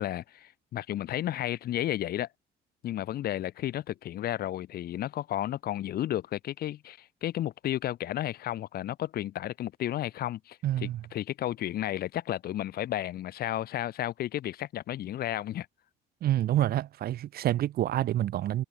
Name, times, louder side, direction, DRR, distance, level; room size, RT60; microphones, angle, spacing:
voice 1, 0.0-2.3 2.8-15.7, left 12 dB, 65° left, 3.7 m, -33 dB
voice 2, 10.6-11.0 16.2-18.6, right 13 dB, 65° right, 2.4 m, -27 dB
cardioid pair, 110°, 17 cm